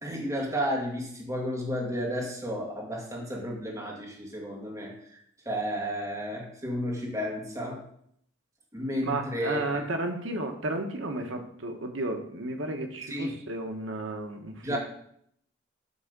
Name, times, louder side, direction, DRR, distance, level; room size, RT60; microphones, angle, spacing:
voice 1, 0.0-5.2 5.5-7.8 8.7-9.8 13.1-13.3 14.6-14.8, equal, 15° right, -2 dB, 2.0 m, -32 dB
voice 2, 9.0-14.8, right 2 dB, 70° right, 4 dB, 1.1 m, -33 dB
9.6 x 3.5 x 6.6 m, 0.69 s
head